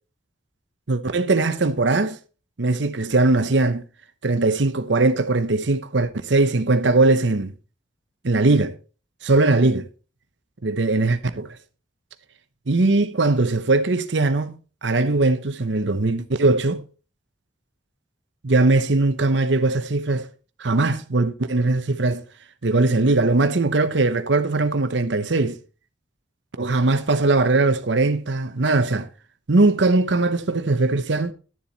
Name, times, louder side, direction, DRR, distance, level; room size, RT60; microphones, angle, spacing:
voice 1, 0.9-2.2 2.6-3.8 4.2-7.5 8.2-8.7 9.2-9.9 10.6-11.6 12.7-14.6 14.8-16.8 18.4-20.3 20.6-22.2 22.6-25.6 26.6-29.1 29.5-31.3, right 2 dB, 70° right, 0.9 m, -20 dB
12.0 x 7.3 x 4.0 m
head